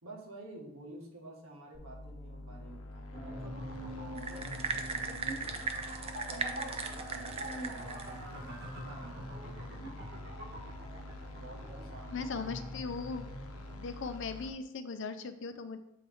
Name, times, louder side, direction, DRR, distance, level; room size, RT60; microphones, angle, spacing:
voice 1, 0.0-5.6 6.3-10.0 11.4-12.5, right 2 dB, 80° right, -1 dB, 1.5 m, -51 dB
sound 1, 1.7-14.5, left 2 dB, 85° left, 0.8 m, -47 dB
sound 2, 3.1-14.0, equal, 55° right, 1.4 m, -45 dB
sound 3, 4.2-8.2, right 5 dB, 25° right, 0.4 m, -38 dB
voice 2, 12.1-13.3 13.8-15.8, left 4 dB, 60° left, 9 dB, 0.5 m, -38 dB
7.2 x 4.3 x 3.5 m, 0.82 s
head